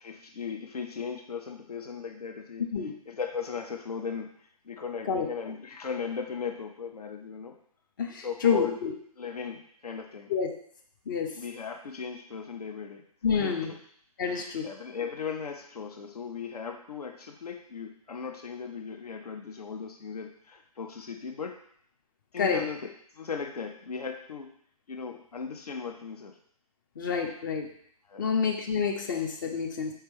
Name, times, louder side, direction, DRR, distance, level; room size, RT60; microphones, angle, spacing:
voice 1, 0.0-2.7 3.1-4.3 4.6-7.5 8.2-8.8 9.2-10.3 11.3-13.0 13.4-13.8 14.3-21.6 22.3-24.5 24.9-26.4 28.1-28.3, left 6 dB, 80° left, 4 dB, 0.6 m, -37 dB
voice 2, 8.0-8.9 10.3-10.5 11.1-11.3 13.2-13.7 14.2-14.7 22.4-22.6 27.0-27.7 28.2-29.9, left 6 dB, 35° left, 3 dB, 0.5 m, -28 dB
4.5 x 2.9 x 3.4 m, 0.63 s
figure-of-eight pair, 140°, 19 cm